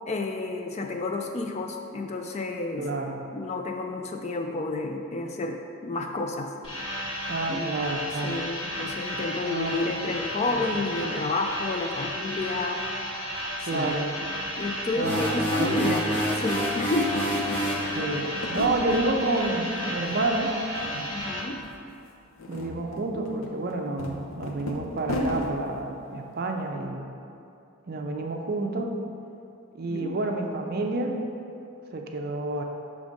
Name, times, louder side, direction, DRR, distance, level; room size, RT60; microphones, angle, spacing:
voice 1, 0.1-2.9 3.3-6.5 7.5-7.7 8.0-12.8 13.7-14.0 14.6-16.0 16.4-17.3 21.1-21.6 29.9-30.2, left 3 dB, 30° left, 4 dB, 0.3 m, -30 dB
voice 2, 2.8-3.2 7.3-8.5 9.5-9.8 10.5-10.8 13.6-14.1 15.0-16.1 17.7-20.5 22.5-27.1 27.9-28.9 29.7-31.2 31.9-32.6, right 2 dB, 45° right, 3 dB, 0.5 m, -29 dB
sound 1, 6.6-21.4, equal, 80° left, 1.4 m, -33 dB
sound 2, 15.0-17.9, equal, 10° left, 0.8 m, -27 dB
sound 3, 15.1-15.2 15.4-16.5 16.8-19.1 19.5-20.2 20.5-21.3 21.6-21.7 22.2-25.5, left 1 dB, 65° left, 0.7 m, -35 dB
6.4 x 3.5 x 5.1 m, 2.6 s
head